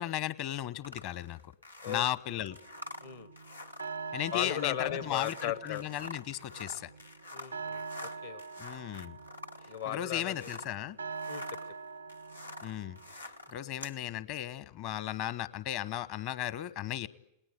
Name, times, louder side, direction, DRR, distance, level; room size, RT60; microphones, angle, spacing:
voice 1, 0.0-1.5 1.9-2.6 4.1-6.9 8.6-9.2 9.9-11.0 12.6-17.1, left 12 dB, 45° left, 17 dB, 1.1 m, -36 dB
sound 1, 0.8-10.8 11.1-14.0, left 1 dB, 85° left, 1.2 m, -47 dB
voice 2, 1.8-2.5 3.0-3.3 4.3-5.8 7.3-8.4 9.7-10.5 11.3-11.4, left 10 dB, 65° left, 15 dB, 1.4 m, -37 dB
sound 2, 2.5-13.7, right 4 dB, 80° right, 0.9 m, -45 dB
28.0 x 19.0 x 9.0 m, 0.84 s
figure-of-eight pair, 90°, 0 cm